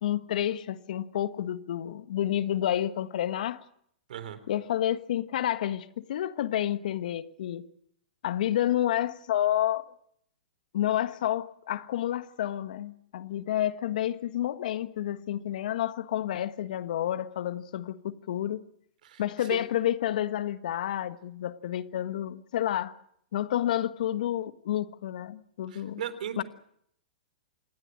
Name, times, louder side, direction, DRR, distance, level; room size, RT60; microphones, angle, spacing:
voice 1, 0.0-3.6 4.5-7.7 8.2-9.8 10.7-18.6 19.2-23.0 23.3-26.0 26.4-26.5, left 12 dB, 65° left, 1.5 m, -30 dB
voice 2, 4.1-4.4 19.0-19.6 25.7-26.4, right 9 dB, 65° right, 3.6 m, -37 dB
27.0 x 20.5 x 6.4 m
hypercardioid pair, 115°, 5 cm